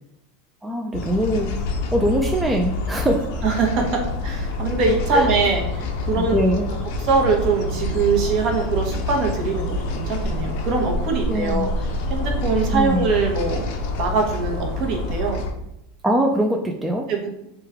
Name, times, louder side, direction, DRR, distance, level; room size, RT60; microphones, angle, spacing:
voice 1, 0.6-1.6 1.9-3.4 5.1-5.3 6.2-6.7 11.3-11.7 12.7-13.1 16.0-17.1, equal, 5° right, 1 dB, 0.3 m, -22 dB
sound 1, 0.9-15.5, left 2 dB, 65° left, 0.5 m, -27 dB
voice 2, 3.4-6.5 7.0-9.7 10.0-13.6 14.0-15.4 17.1-17.3, right 4 dB, 50° right, 1 dB, 0.8 m, -23 dB
3.1 x 2.2 x 3.5 m, 0.83 s
supercardioid pair, 125°, 0 cm